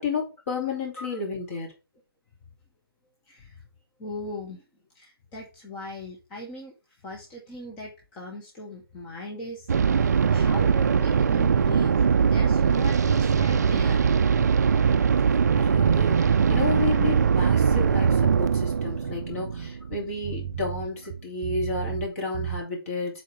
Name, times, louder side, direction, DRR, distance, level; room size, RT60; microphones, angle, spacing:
voice 1, 0.0-1.7 15.6-16.2 16.5-23.2, left 4 dB, 35° left, 2.7 m, -31 dB
voice 2, 3.3-3.6 4.0-4.6 4.9-6.7 7.0-11.9 12.2-14.1, left 1 dB, 10° left, 0.7 m, -39 dB
sound 1, 9.7-20.4, right 6 dB, 45° right, 0.4 m, -21 dB
sound 2, 13.0-13.6 14.1-17.3 17.5-18.4 18.9-22.1 22.3-22.6, right 9 dB, 20° right, 1.5 m, -34 dB
6.3 x 4.0 x 4.9 m
figure-of-eight pair, 155°, 13 cm